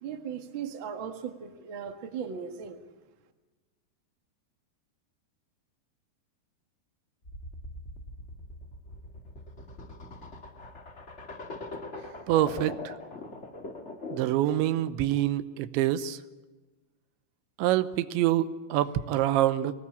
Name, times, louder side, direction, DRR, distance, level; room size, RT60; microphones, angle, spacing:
voice 1, 0.0-2.8, right 7 dB, 65° right, 6 dB, 1.2 m, -37 dB
sound 1, 7.2-14.4, left 2 dB, 35° left, 1.0 m, -42 dB
voice 2, 11.9-12.9 14.1-16.2 17.6-19.7, right 13 dB, 90° right, 13 dB, 3.2 m, -26 dB
24.0 x 18.5 x 8.6 m, 1.2 s
omnidirectional pair, 5.1 m